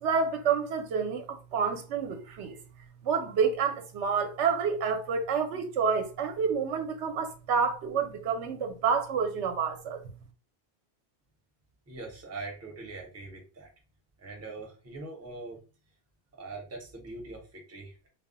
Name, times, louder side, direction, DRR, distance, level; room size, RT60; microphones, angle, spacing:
voice 1, 0.0-2.6 3.0-10.0, right 6 dB, 75° right, 0.9 m, -28 dB
voice 2, 11.9-13.7 14.2-15.6 16.4-18.1, right 3 dB, 15° right, 0.6 m, -42 dB
2.2 x 2.1 x 3.7 m
omnidirectional pair, 1.2 m